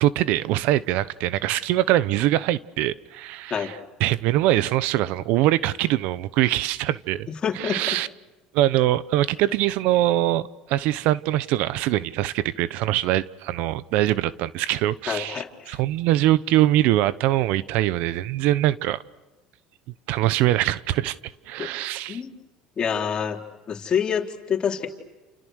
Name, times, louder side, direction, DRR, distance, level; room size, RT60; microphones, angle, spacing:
voice 1, 0.0-7.3 7.5-8.1 8.5-19.0 20.1-22.2, right 14 dB, 70° right, 17 dB, 0.9 m, -23 dB
voice 2, 7.4-8.0 15.1-15.8 21.6-21.7 22.1-22.3 22.8-23.4 23.7-24.9, left 7 dB, 35° left, 2 dB, 3.9 m, -27 dB
30.0 x 29.0 x 6.5 m, 1.1 s
supercardioid pair, 105°, 3 cm